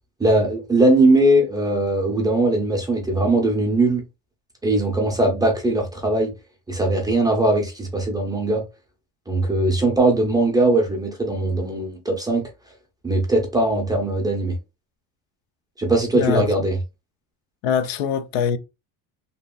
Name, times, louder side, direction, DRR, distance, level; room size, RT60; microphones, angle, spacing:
voice 1, 0.2-4.0 4.6-6.3 6.7-8.6 9.3-12.5 13.0-14.5 15.8-16.8, right 2 dB, 10° right, 0.5 m, -20 dB
voice 2, 16.1-16.5 17.6-18.6, left 7 dB, 85° left, 0.5 m, -22 dB
2.8 x 2.3 x 2.3 m
cardioid pair, 145°, 39 cm